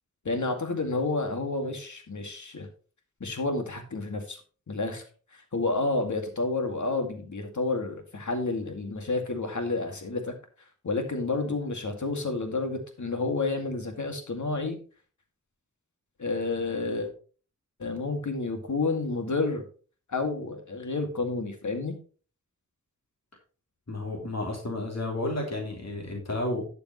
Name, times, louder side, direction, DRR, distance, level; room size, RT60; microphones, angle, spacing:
voice 1, 0.2-2.7 3.2-4.4 4.7-5.0 5.3-10.3 10.8-14.8 16.2-17.1 17.8-19.6 20.1-21.9, left 3 dB, 80° left, 5 dB, 2.2 m, -30 dB
voice 2, 23.9-26.7, left 2 dB, 60° left, 0 dB, 3.0 m, -32 dB
12.0 x 7.0 x 3.1 m, 0.38 s
wide cardioid pair, 70°, 30 cm